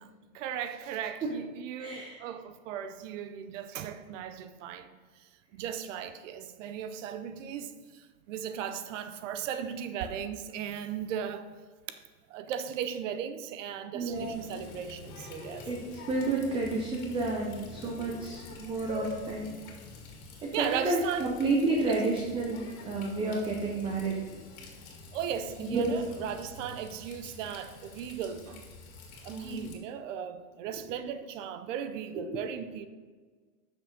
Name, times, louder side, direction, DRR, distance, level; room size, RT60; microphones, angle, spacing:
voice 1, 0.0-11.5 11.9-12.0 12.3-15.7 20.5-21.3 21.9-22.0 25.1-28.7 29.2-32.9, right 8 dB, 60° right, 0.7 m, -37 dB
voice 2, 1.8-2.2 13.9-14.4 15.7-15.8 16.1-19.5 20.4-22.6 22.9-24.2 25.6-25.9 29.3-29.7 32.3-32.4, right 3 dB, 15° right, 0.4 m, -30 dB
Water tap faucet, 14.1-29.7, left 4 dB, 75° left, 2.0 m, -46 dB
7.6 x 6.2 x 5.0 m
supercardioid pair, 150°, 43 cm